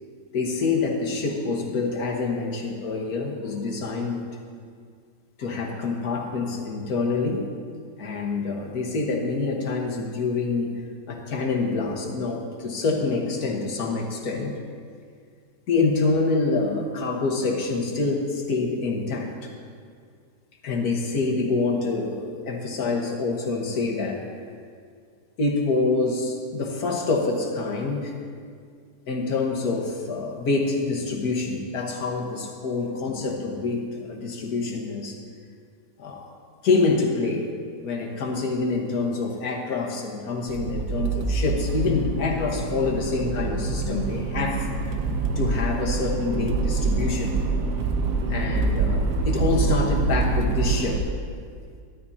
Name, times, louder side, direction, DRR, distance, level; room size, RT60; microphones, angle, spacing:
voice 1, 0.3-4.2 5.4-7.4 8.0-10.7 11.1-14.5 15.7-19.3 20.6-24.2 25.4-28.1 29.1-35.2 36.0-36.3 36.6-37.4 37.8-44.6 45.4-47.4 48.3-51.0, left 3 dB, 60° left, 0 dB, 1.7 m, -26 dB
Accelerating revving vroom, 40.5-51.0, right 3 dB, 60° right, 1.0 m, -25 dB
14.0 x 13.0 x 2.8 m, 2.2 s
omnidirectional pair, 1.9 m